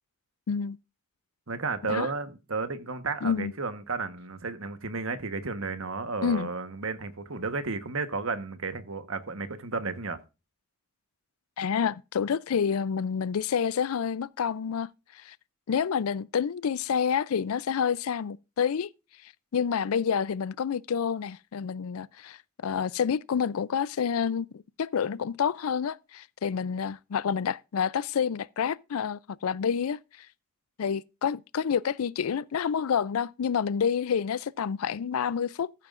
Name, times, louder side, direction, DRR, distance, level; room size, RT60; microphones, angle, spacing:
voice 1, 0.5-0.8 1.9-2.1 3.2-3.5 6.2-6.5 11.6-15.4 15.7-18.9 19.2-30.3 30.8-35.7, left 7 dB, 80° left, 0.4 m, -28 dB
voice 2, 1.5-10.2, right 4 dB, 70° right, 1.2 m, -33 dB
14.5 x 9.1 x 2.5 m
head